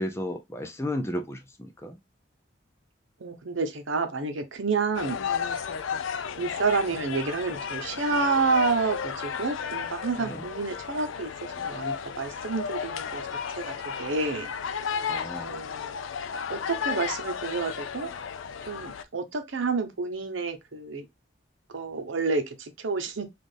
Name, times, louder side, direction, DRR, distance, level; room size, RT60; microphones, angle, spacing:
voice 1, 0.0-2.0 10.2-10.4 15.1-15.6, left 1 dB, 15° left, 0.4 m, -33 dB
voice 2, 3.2-5.2 6.4-13.2 13.5-14.5 15.4-16.0 16.5-18.1 18.7-21.0 21.7-23.2, right 4 dB, 85° right, 0.8 m, -29 dB
sound 1, 4.9-19.0, left 7 dB, 85° left, 0.4 m, -33 dB
4.1 x 2.4 x 3.3 m
head